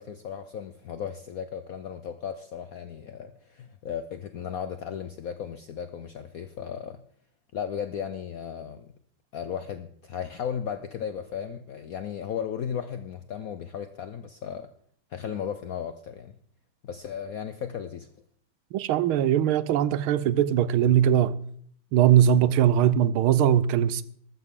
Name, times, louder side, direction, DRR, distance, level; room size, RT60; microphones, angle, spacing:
voice 1, 0.0-7.0 7.5-8.9 9.3-14.7 15.1-16.4 16.8-18.1, left 8 dB, 75° left, 0.8 m, -35 dB
voice 2, 18.7-21.3 21.9-24.0, right 10 dB, 85° right, 1.5 m, -21 dB
13.5 x 13.5 x 3.7 m
omnidirectional pair, 2.2 m